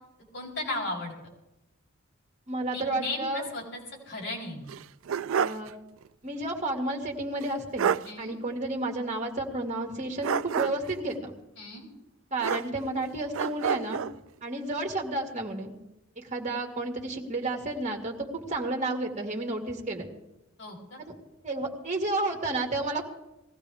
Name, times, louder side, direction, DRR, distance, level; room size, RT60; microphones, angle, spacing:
voice 1, 0.3-1.1 2.7-3.8 4.1-4.7 8.1-8.4 11.6-11.9 20.6-21.0, left 2 dB, 60° left, -1 dB, 4.6 m, -35 dB
voice 2, 2.5-3.5 5.4-5.7 6.2-7.9 8.2-11.3 12.3-14.0 14.4-15.7 16.2-20.1 21.4-23.0, right 2 dB, 35° right, 2 dB, 2.2 m, -31 dB
sound 1, 4.7-5.7 6.0-6.1 7.4-7.5 7.8-8.1 10.2-11.0 12.4-13.0 13.3-14.2, right 7 dB, 80° right, 0.4 m, -29 dB
20.0 x 15.5 x 3.5 m, 0.96 s
head